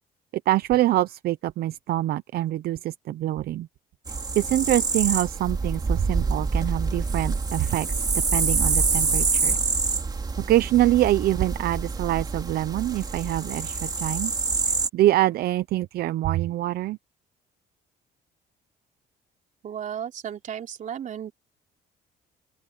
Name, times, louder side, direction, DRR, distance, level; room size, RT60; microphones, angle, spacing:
voice 1, 0.5-3.7 4.4-8.1 8.3-9.6 10.4-14.3 14.9-17.0, right 14 dB, 65° right, 0.7 m, -25 dB
sound 1, 4.1-14.9, right 4 dB, 25° right, 3.1 m, -26 dB
voice 2, 19.6-21.3, right 9 dB, 50° right, 3.5 m, -34 dB
open air
cardioid pair, 110°, 17 cm